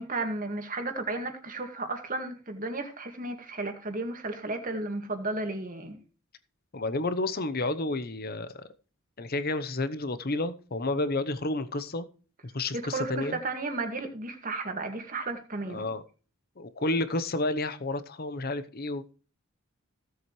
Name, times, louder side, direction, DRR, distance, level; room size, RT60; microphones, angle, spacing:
voice 1, 0.0-6.0 12.7-15.8, right 2 dB, 35° right, 6 dB, 2.0 m, -33 dB
voice 2, 6.7-8.6 9.2-12.1 12.4-13.4 15.7-16.0 16.6-19.1, left 2 dB, 45° left, 13 dB, 0.9 m, -30 dB
16.0 x 7.7 x 3.2 m, 0.38 s
head